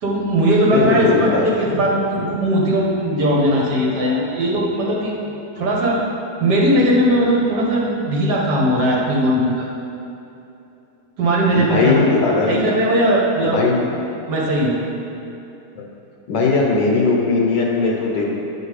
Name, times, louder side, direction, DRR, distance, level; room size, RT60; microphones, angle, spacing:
voice 1, 0.0-5.2 5.6-6.0 6.4-9.7 11.2-12.1 12.5-13.6 14.3-14.8, right 1 dB, 60° right, -3 dB, 1.3 m, -18 dB
voice 2, 0.7-1.8 11.5-12.6 13.4-13.8 15.8-15.9 16.3-18.3, left 4 dB, 65° left, -1 dB, 1.2 m, -19 dB
8.6 x 5.0 x 4.8 m, 2.8 s
omnidirectional pair, 2.4 m